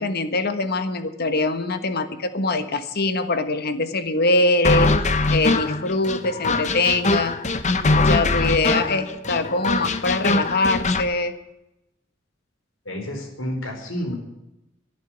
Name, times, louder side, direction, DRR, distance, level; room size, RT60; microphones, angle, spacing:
voice 1, 0.0-4.9 5.3-7.4 7.9-11.3, left 2 dB, 55° left, 10 dB, 1.4 m, -23 dB
sound 1, 4.6-11.1, left 3 dB, 40° left, 1.0 m, -22 dB
voice 2, 12.8-14.1, equal, 80° left, 3 dB, 4.6 m, -30 dB
12.0 x 10.5 x 10.0 m, 0.90 s
head